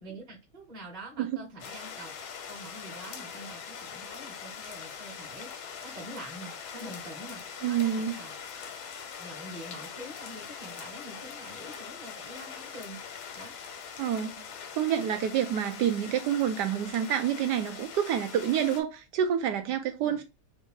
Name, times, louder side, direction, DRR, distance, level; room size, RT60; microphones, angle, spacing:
voice 1, 0.0-8.3 9.2-13.0 13.3-13.5 20.0-20.2, right 1 dB, 25° right, 1.1 m, -46 dB
sound 1, 1.6-18.8, left 7 dB, 80° left, 1.6 m, -42 dB
voice 2, 7.6-8.1 14.0-14.4 14.7-20.2, right 9 dB, 75° right, 1.0 m, -28 dB
3.6 x 2.6 x 3.6 m
omnidirectional pair, 2.2 m